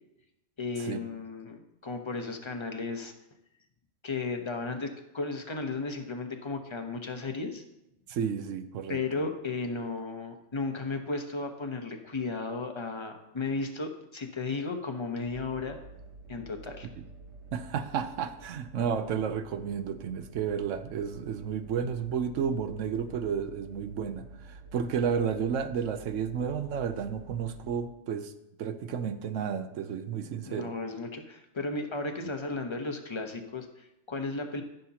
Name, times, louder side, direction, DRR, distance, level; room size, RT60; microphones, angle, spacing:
voice 1, 0.6-3.1 4.0-7.6 8.9-15.8 16.3-16.9 30.4-34.6, left 3 dB, 25° left, 5 dB, 0.8 m, -34 dB
voice 2, 8.1-9.0 17.0-17.1 17.5-28.3 28.6-30.7, right 7 dB, 80° right, 10 dB, 1.0 m, -32 dB
sound 1, 15.2-27.8, right 3 dB, 60° right, 1.6 m, -50 dB
14.0 x 6.6 x 2.9 m, 0.87 s
omnidirectional pair, 1.3 m